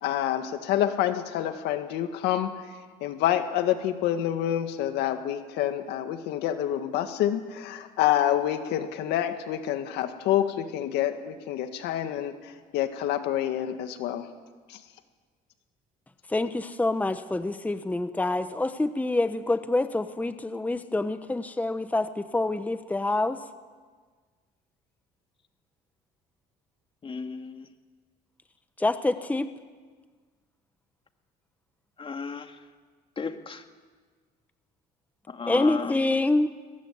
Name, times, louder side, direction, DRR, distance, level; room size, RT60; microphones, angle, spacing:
voice 1, 0.0-2.5 3.0-12.3 12.7-14.2, left 11 dB, 90° left, 1.9 m, -27 dB
voice 2, 16.3-23.4 28.8-29.5 35.5-36.5, left 2 dB, 10° left, 1.0 m, -26 dB
voice 3, 27.0-27.7 32.0-32.5 33.2-33.6 35.3-36.0, left 4 dB, 30° left, 1.9 m, -34 dB
22.5 x 19.0 x 9.6 m
cardioid pair, 110°, 17 cm